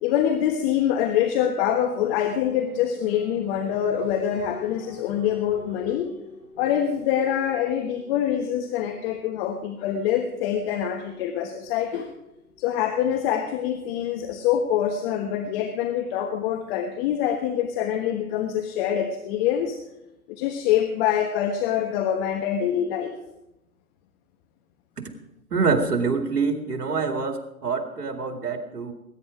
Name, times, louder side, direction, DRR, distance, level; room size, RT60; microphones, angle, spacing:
voice 1, 0.0-6.1 6.6-12.1 12.6-19.8 20.3-23.1, left 9 dB, 40° left, 6 dB, 1.3 m, -25 dB
sound 1, 2.0-12.8, left 3 dB, 10° left, 7.4 m, -46 dB
voice 2, 25.5-28.9, right 4 dB, 90° right, 5 dB, 2.2 m, -25 dB
20.0 x 9.8 x 4.9 m, 0.89 s
hypercardioid pair, 120°, 46 cm